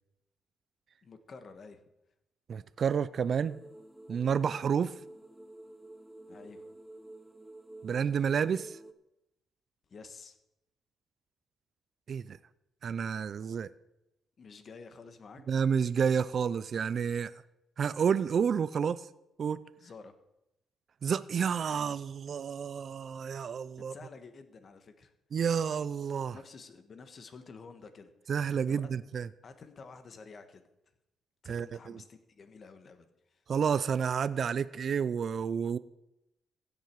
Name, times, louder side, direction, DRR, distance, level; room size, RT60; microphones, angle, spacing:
voice 1, 1.0-1.8 6.3-6.7 9.9-10.4 14.4-15.4 19.8-20.1 23.8-25.1 26.3-28.3 28.7-28.9 29.4-30.6 31.4-33.4, left 4 dB, 45° left, 8 dB, 1.4 m, -50 dB
voice 2, 2.5-3.6 4.1-4.9 7.8-8.8 12.1-12.4 12.8-13.7 15.5-17.3 17.8-19.1 19.4-19.6 21.0-23.9 25.3-26.4 28.3-29.3 31.5-31.7 33.5-35.8, right 7 dB, 55° right, 16 dB, 0.4 m, -30 dB
sound 1, 3.4-8.9, right 1 dB, 5° right, 0.8 m, -50 dB
15.5 x 7.5 x 4.7 m, 0.88 s
cardioid pair, 90°, 0 cm